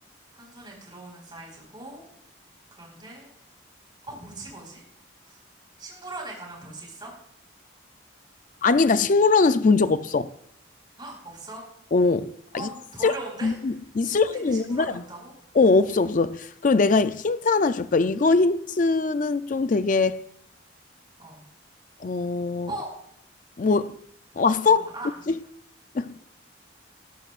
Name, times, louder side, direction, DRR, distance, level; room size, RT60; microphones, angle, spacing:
voice 1, 0.3-2.0 2.8-3.3 4.0-4.8 5.3-5.4 5.8-7.1 11.0-11.6 12.5-13.7 14.0-15.3 21.2-21.4 22.7-22.9 24.6-25.1, right 2 dB, 20° right, 4.9 m, -40 dB
voice 2, 8.6-10.3 11.9-12.7 13.0-13.1 13.4-15.0 15.5-20.2 22.0-22.7 23.6-24.0 24.4-24.9 25.3-25.4 25.9-26.2, left 4 dB, 40° left, 0.4 m, -22 dB
19.5 x 12.0 x 2.5 m
head